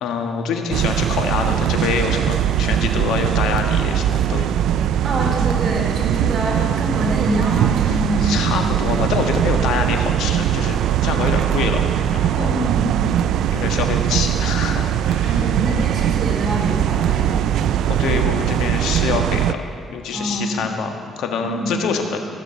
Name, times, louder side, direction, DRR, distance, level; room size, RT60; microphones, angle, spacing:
voice 1, 0.0-4.5 7.9-11.8 12.1-12.6 13.5-15.5 17.9-19.6 19.9-22.2, left 5 dB, 85° left, 4 dB, 1.4 m, -25 dB
sound 1, 0.7-19.5, right 10 dB, 80° right, 0.4 m, -20 dB
voice 2, 5.0-8.4 12.3-13.0 15.2-17.3 20.1-20.6 21.4-21.7, right 1 dB, 35° right, -3 dB, 3.7 m, -25 dB
15.5 x 6.3 x 8.6 m, 2.2 s
cardioid pair, 90°, 0 cm